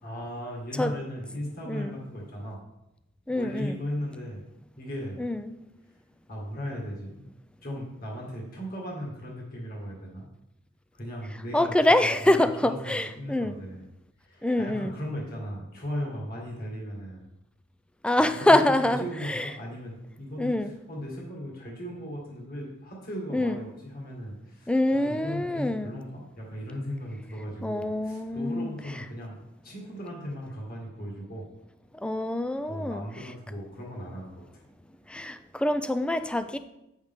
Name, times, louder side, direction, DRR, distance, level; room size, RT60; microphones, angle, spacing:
voice 1, 0.0-2.6 3.3-4.4 4.8-5.2 6.3-7.3 7.6-10.3 10.9-13.9 14.2-17.2 18.1-29.4 29.6-31.5 32.7-34.6, equal, 50° left, -2 dB, 1.9 m, -37 dB
voice 2, 3.3-3.7 5.2-5.4 11.5-13.5 14.4-14.9 18.0-19.0 19.3-19.4 20.4-20.7 23.3-23.6 24.7-26.0 27.6-28.7 32.0-33.0 35.1-36.6, left 1 dB, 5° left, 10 dB, 0.4 m, -25 dB
8.3 x 6.3 x 3.7 m, 0.88 s
head